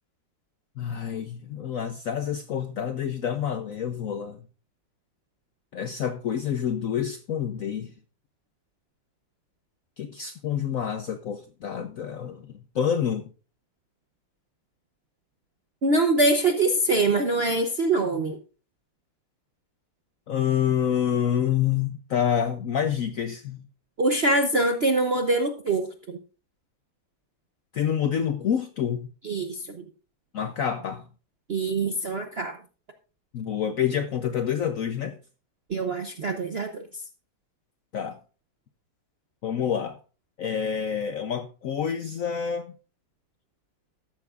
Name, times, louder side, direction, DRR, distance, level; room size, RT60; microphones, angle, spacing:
voice 1, 0.8-4.4 5.7-7.9 10.0-13.3 20.3-23.6 27.7-29.1 30.3-31.0 33.3-35.2 37.9-38.2 39.4-40.0 40.4-42.7, left 8 dB, 65° left, 0.8 m, -27 dB
voice 2, 15.8-18.4 24.0-26.2 29.2-29.8 31.5-32.6 35.7-37.0, right 2 dB, 55° right, 0.7 m, -24 dB
13.5 x 11.5 x 2.4 m
omnidirectional pair, 2.1 m